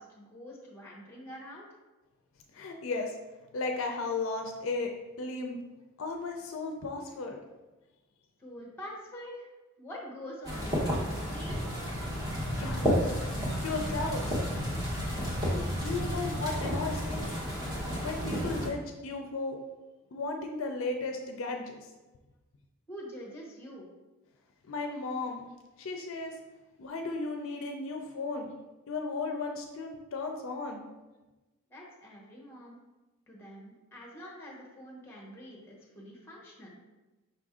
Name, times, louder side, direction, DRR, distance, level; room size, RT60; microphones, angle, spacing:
voice 1, 0.0-1.7 8.4-9.5 9.8-11.6 22.9-23.9 31.7-32.8 33.3-36.8, equal, 10° left, -3 dB, 0.9 m, -45 dB
voice 2, 2.5-3.1 3.5-4.9 5.2-5.6 6.0-7.4 12.6-13.2 13.6-14.4 15.5-17.3 18.0-19.6 20.1-21.9 24.7-25.5 25.8-26.3 26.8-28.5 28.9-30.8, left 3 dB, 65° left, 3 dB, 0.4 m, -35 dB
sound 1, 10.4-18.7, equal, 20° right, 0.8 m, -31 dB
5.4 x 2.5 x 3.5 m, 1.1 s
head